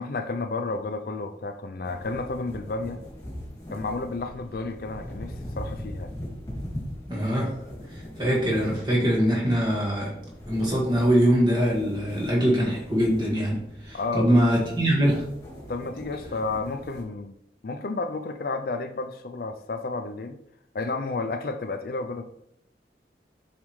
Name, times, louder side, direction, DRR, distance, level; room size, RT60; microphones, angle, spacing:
voice 1, 0.0-3.0 3.7-6.1 13.9-14.4 15.7-17.3 17.6-20.4 20.7-22.2, left 3 dB, 55° left, 7 dB, 0.4 m, -31 dB
sound 1, 1.8-17.0, equal, 20° left, 2.1 m, -41 dB
voice 2, 7.1-7.5 7.9-10.1 10.5-15.2, equal, 25° right, -4 dB, 1.9 m, -23 dB
7.2 x 4.9 x 3.2 m, 0.77 s
head